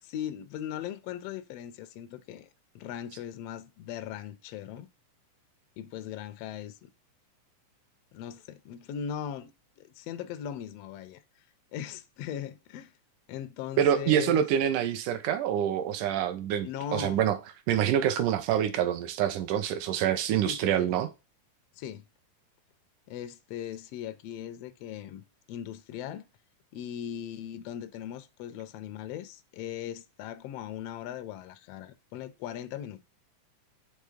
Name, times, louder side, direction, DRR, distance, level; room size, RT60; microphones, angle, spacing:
voice 1, 0.0-2.5 2.7-4.9 5.8-6.9 8.1-9.5 9.8-11.2 11.7-12.9 13.3-14.5 16.6-17.2 20.4-20.9 21.7-22.1 23.1-26.3 26.7-33.0, left 10 dB, 85° left, 1.4 m, -39 dB
voice 2, 13.8-17.4 17.7-21.1, right 10 dB, 85° right, 2.3 m, -26 dB
6.6 x 3.4 x 5.0 m
omnidirectional pair, 3.6 m